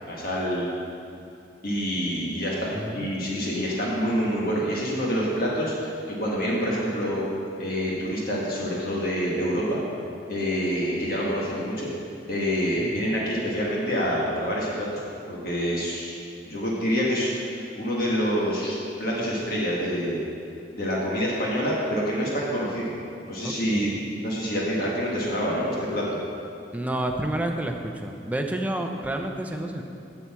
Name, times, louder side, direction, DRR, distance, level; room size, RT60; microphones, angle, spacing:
voice 1, 0.0-0.7 1.6-7.2 7.6-9.8 10.3-11.9 12.3-16.2 16.5-20.2 20.7-22.9 23.2-26.1, equal, 50° left, -5 dB, 1.5 m, -27 dB
voice 2, 2.7-3.1 12.8-13.2 23.4-24.1 26.7-29.8, right 1 dB, 10° right, 3 dB, 0.6 m, -30 dB
7.9 x 7.1 x 7.5 m, 2.6 s
head